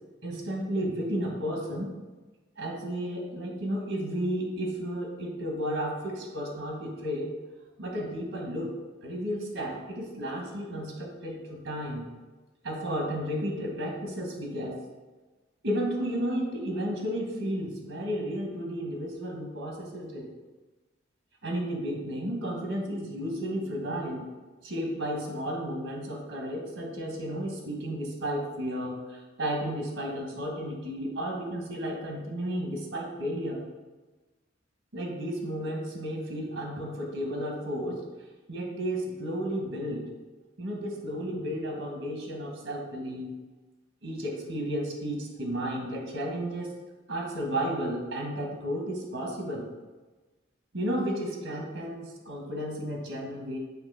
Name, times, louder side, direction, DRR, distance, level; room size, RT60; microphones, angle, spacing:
voice 1, 0.2-1.9 2.6-7.3 7.8-8.7 9.0-12.1 12.6-14.8 15.6-20.3 21.4-24.3 24.6-33.6 34.9-38.0 38.5-40.1 40.6-43.3 44.0-46.7 47.1-49.7 50.7-53.6, equal, 80° right, 1 dB, 1.2 m, -33 dB
8.0 x 2.9 x 5.4 m, 1.2 s
head